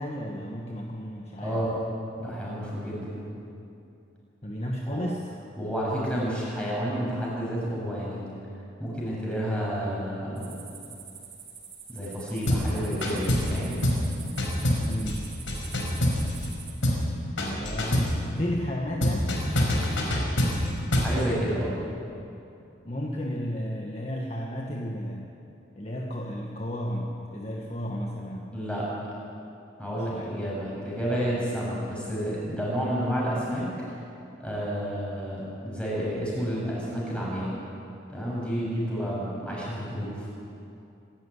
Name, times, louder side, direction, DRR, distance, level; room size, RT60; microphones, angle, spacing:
voice 1, 0.0-1.6 4.4-5.3 14.8-15.3 17.4-19.4 22.8-25.3 25.7-28.5 29.9-30.3 31.1-31.5, equal, 35° left, 0 dB, 1.5 m, -33 dB
voice 2, 1.4-1.7 2.2-3.2 4.8-5.1 5.6-8.2 8.8-10.6 11.9-13.8 20.9-21.7 28.5-28.9 29.8-34.0 34.4-37.5 38.1-40.3, equal, 5° left, -6 dB, 7.5 m, -30 dB
sound 1, 10.4-16.7, right 6 dB, 35° right, 3.9 m, -45 dB
sound 2, 12.5-12.7 13.0-13.6 13.8-14.1 14.4-16.5 16.8-17.1 17.4-18.2 19.0-21.2, left 1 dB, 90° left, 4.9 m, -25 dB
26.0 x 12.5 x 10.0 m, 2.7 s
head